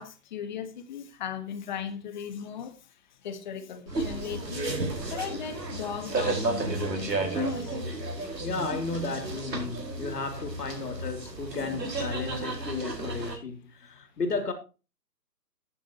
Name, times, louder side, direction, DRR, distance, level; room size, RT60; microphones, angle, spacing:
voice 1, 0.0-2.7 3.2-4.7 5.1-7.8, left 7 dB, 30° left, 1.5 m, -37 dB
sound 1, 3.9-13.4, right 2 dB, 85° right, 4.9 m, -32 dB
voice 2, 8.4-14.5, left 3 dB, 70° left, 3.4 m, -34 dB
13.5 x 10.5 x 3.0 m
hypercardioid pair, 150°, 49 cm